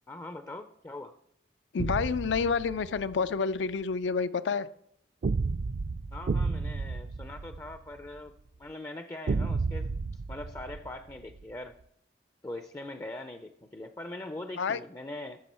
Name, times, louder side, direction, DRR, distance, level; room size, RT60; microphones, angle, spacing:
voice 1, 0.1-1.1 6.1-11.7 12.4-15.4, left 2 dB, 20° left, 8 dB, 0.4 m, -42 dB
voice 2, 1.7-4.7 14.6-14.8, left 5 dB, 85° left, 14 dB, 0.4 m, -29 dB
sound 1, 1.8-3.2 5.2-8.2 9.3-11.4, right 4 dB, 50° right, 0.3 m, -32 dB
13.0 x 6.5 x 4.3 m, 0.74 s
head